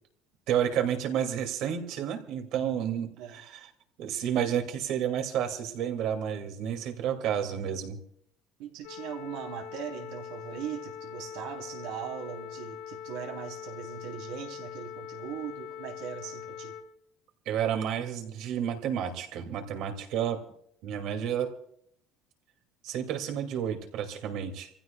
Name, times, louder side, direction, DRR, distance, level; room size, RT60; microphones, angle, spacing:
voice 1, 0.5-3.7 4.0-8.0 17.5-20.4 20.8-21.5 22.8-24.7, right 9 dB, 55° right, 4 dB, 2.4 m, -30 dB
voice 2, 2.5-2.9 3.2-3.4 8.6-16.8, right 9 dB, 85° right, 1 dB, 3.4 m, -40 dB
sound 1, 8.8-16.8, left 9 dB, 70° left, 3.8 m, -42 dB
28.5 x 15.5 x 2.3 m, 0.69 s
cardioid pair, 170°, 0 cm